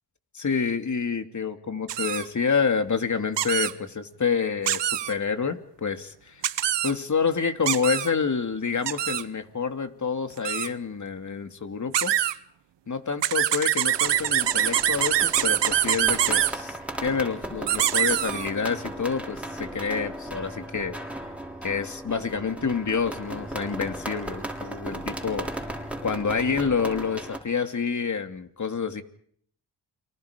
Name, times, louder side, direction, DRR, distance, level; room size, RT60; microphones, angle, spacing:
voice 1, 0.3-6.4 6.8-12.1 12.9-21.0 21.6-25.5 26.0-29.0, left 5 dB, 45° left, 7 dB, 2.8 m, -28 dB
sound 1, 1.9-2.2 3.4-3.7 4.7-5.1 6.4-6.9 7.7-8.1 8.9-9.2 10.4-10.7 11.9-12.3 13.2-16.5 17.7-18.5, right 11 dB, 80° right, 1.1 m, -24 dB
sound 2, 13.9-27.4, right 1 dB, 5° right, 7.0 m, -36 dB
29.5 x 25.0 x 5.3 m, 0.62 s
cardioid pair, 70°, 42 cm